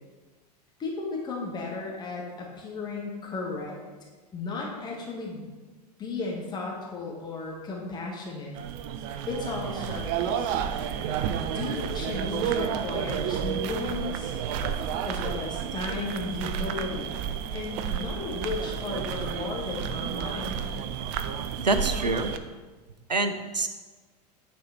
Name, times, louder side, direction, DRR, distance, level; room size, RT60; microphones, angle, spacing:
voice 1, 0.8-3.8 4.3-5.5 6.0-8.6 9.3-10.5 11.3-14.3 15.0-17.3 17.5-20.7, left 3 dB, 20° left, -1 dB, 1.6 m, -34 dB
sound 1, 8.5-22.4, right 8 dB, 40° right, 0.5 m, -31 dB
voice 2, 21.6-22.3 23.1-23.7, right 3 dB, 85° right, 8 dB, 0.6 m, -26 dB
9.2 x 4.4 x 4.2 m, 1.3 s
figure-of-eight pair, 90°, 21 cm